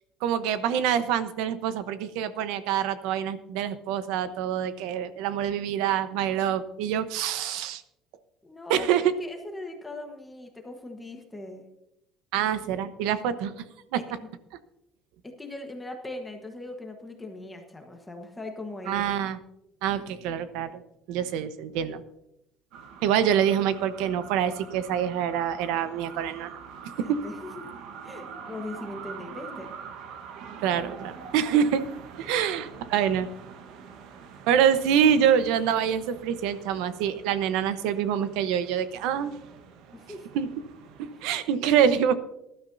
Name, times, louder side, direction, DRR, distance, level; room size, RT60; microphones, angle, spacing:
voice 1, 0.2-7.8 8.7-9.1 12.3-13.6 13.9-14.0 18.9-19.4 19.8-20.8 21.1-22.0 23.0-26.5 27.0-27.2 30.6-31.9 32.2-33.3 34.5-39.3 40.3-40.5 41.0-42.1, right 9 dB, 75° right, 12 dB, 0.9 m, -25 dB
voice 2, 8.4-11.7 13.9-14.0 15.2-19.2 27.0-27.7 28.0-29.7 32.2-32.4 39.9-40.3 41.1-41.3, left 2 dB, 10° left, 3 dB, 1.2 m, -40 dB
sound 1, 22.7-41.3, right 6 dB, 60° right, 1.2 m, -45 dB
19.5 x 12.5 x 2.7 m, 0.84 s
cardioid pair, 175°, 0 cm